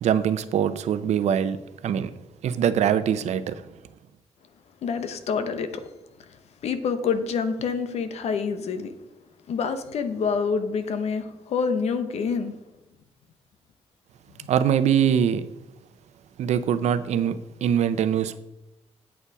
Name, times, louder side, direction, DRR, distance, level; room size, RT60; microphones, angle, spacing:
voice 1, 0.0-1.6 1.8-2.1 2.4-3.6 14.5-15.4 16.4-18.4, right 9 dB, 90° right, 0.7 m, -23 dB
voice 2, 4.8-5.7 6.6-8.9 9.5-12.5, left 5 dB, 70° left, 0.9 m, -27 dB
8.5 x 8.4 x 4.8 m
wide cardioid pair, 170°, 11 cm